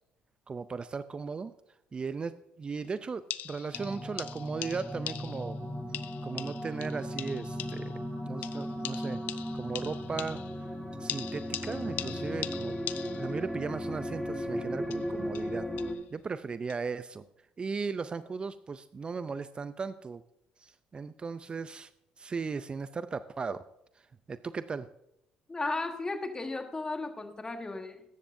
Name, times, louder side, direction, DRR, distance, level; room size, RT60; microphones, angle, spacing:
voice 1, 0.5-1.5 1.9-5.6 6.2-7.9 8.2-9.2 9.5-10.4 11.0-12.8 13.2-15.7 16.1-17.2 17.6-20.2 20.6-21.9 22.2-23.6 24.3-24.9, right 5 dB, 35° right, 13 dB, 0.4 m, -37 dB
sound 1, 2.8-2.9 3.3-5.6 5.9-8.0 8.4-10.7 11.1-13.4 14.8-16.0 16.7-16.8, left 13 dB, 70° left, 0.4 m, -41 dB
sound 2, 3.7-16.0, equal, 5° left, 1.5 m, -36 dB
voice 2, 25.5-28.0, left 3 dB, 25° left, 6 dB, 1.5 m, -35 dB
14.0 x 10.5 x 2.6 m, 0.81 s
supercardioid pair, 70°, 3 cm